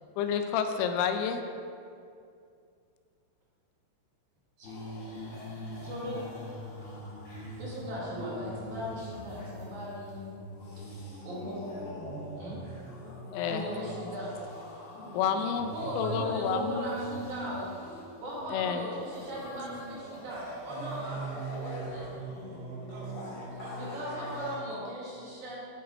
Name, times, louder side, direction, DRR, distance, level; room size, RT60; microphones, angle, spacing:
voice 1, 0.2-1.4 13.3-13.7 15.1-16.8 18.5-18.9, left 7 dB, 85° left, 7 dB, 2.7 m, -29 dB
sound 1, 4.6-24.5, equal, 45° left, 1.9 m, -41 dB
voice 2, 5.8-6.3 7.6-10.3 11.2-11.6 12.4-12.6 13.5-14.3 15.7-17.7 18.2-22.2 23.8-25.7, equal, 60° right, -7 dB, 2.0 m, -38 dB
voice 3, 22.2-24.3, right 2 dB, 80° right, -6 dB, 3.9 m, -50 dB
11.5 x 4.3 x 4.1 m, 2.4 s
omnidirectional pair, 5.5 m